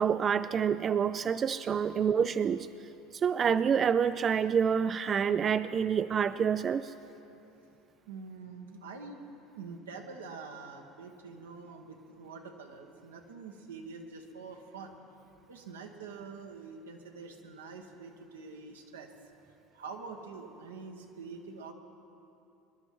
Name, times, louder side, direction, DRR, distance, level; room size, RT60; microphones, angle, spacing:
voice 1, 0.0-2.7 3.1-6.9, right 7 dB, 35° right, 12 dB, 0.3 m, -27 dB
voice 2, 8.1-9.2 9.6-15.0 15.5-19.1 19.7-21.7, right 4 dB, 85° right, 3 dB, 1.3 m, -45 dB
22.5 x 11.0 x 4.6 m, 2.9 s
hypercardioid pair, 75°, 0 cm